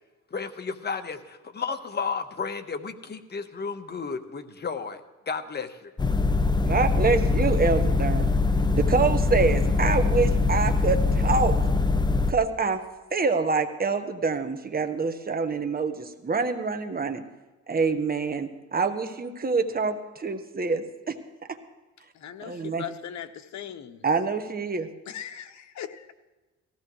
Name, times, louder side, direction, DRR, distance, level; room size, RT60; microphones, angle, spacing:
voice 1, 0.3-5.9, left 5 dB, 35° left, 8 dB, 1.2 m, -33 dB
sound 1, 6.0-12.3, left 3 dB, 15° left, 0.7 m, -23 dB
voice 2, 6.7-8.3 8.7-11.6 12.3-12.8 13.1-17.2 17.7-21.2 22.5-22.8 24.0-24.9, right 4 dB, 30° right, 7 dB, 1.3 m, -26 dB
voice 3, 22.1-24.0 25.1-26.1, left 9 dB, 70° left, 9 dB, 1.1 m, -39 dB
18.5 x 15.5 x 3.2 m, 1.2 s
cardioid pair, 90°, 30 cm